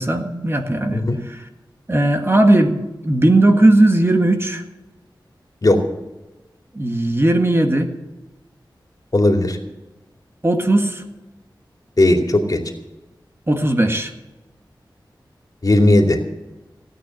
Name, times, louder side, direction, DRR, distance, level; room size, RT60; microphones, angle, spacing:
voice 1, 0.0-1.4 1.9-4.6 6.8-7.9 10.4-11.0 13.5-14.1, right 1 dB, 30° right, 4 dB, 1.7 m, -17 dB
voice 2, 9.1-9.6 12.0-12.6 15.6-16.2, left 1 dB, 50° left, 3 dB, 2.6 m, -15 dB
17.0 x 9.2 x 7.2 m, 1.1 s
wide cardioid pair, 60°, 8 cm